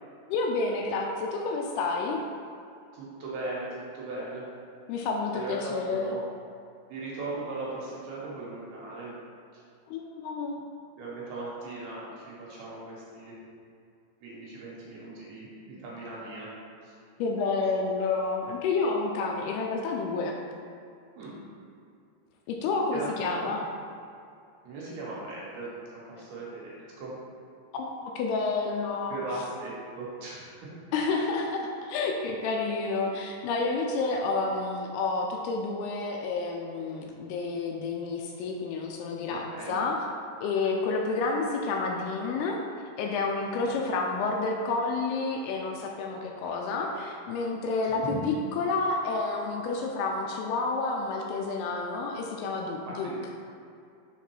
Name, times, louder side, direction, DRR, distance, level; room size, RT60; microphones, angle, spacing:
voice 1, 0.3-2.2 4.9-6.1 9.9-10.6 17.2-20.4 22.5-23.7 27.7-29.2 30.9-40.0 40.4-42.6 43.0-53.1, left 3 dB, 80° left, 1 dB, 2.4 m, -29 dB
voice 2, 2.9-4.4 5.3-6.2 6.9-9.1 9.5-9.6 11.0-13.4 14.2-16.5 16.8-16.9 21.1-21.4 22.9-23.5 24.6-27.1 29.1-30.7 39.3-39.8 43.5-43.7 47.8-48.2 52.8-53.2, right 2 dB, 75° right, -6 dB, 2.9 m, -38 dB
6.7 x 3.6 x 4.7 m, 2.5 s
omnidirectional pair, 4.8 m